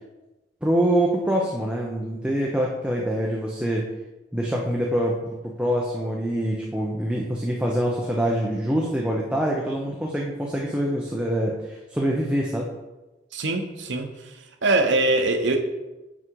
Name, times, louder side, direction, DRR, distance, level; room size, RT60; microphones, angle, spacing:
voice 1, 0.6-3.9 4.3-12.7, right 1 dB, 5° right, 0.7 m, -25 dB
voice 2, 13.3-14.1 14.6-15.6, right 2 dB, 80° right, 0.9 m, -22 dB
6.5 x 6.2 x 4.6 m
head